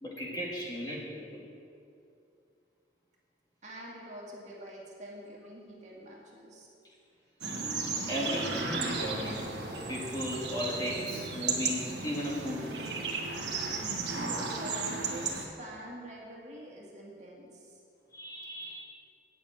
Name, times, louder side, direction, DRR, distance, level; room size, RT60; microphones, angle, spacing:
voice 1, 0.0-1.5 8.1-9.4 9.9-12.7 18.1-18.8, equal, 20° left, -4 dB, 1.9 m, -36 dB
voice 2, 3.6-6.7 14.1-17.8, equal, 40° right, -3 dB, 2.1 m, -46 dB
sound 1, 7.4-15.4, right 4 dB, 75° right, 1.5 m, -34 dB
8.9 x 7.1 x 8.7 m, 2.6 s
head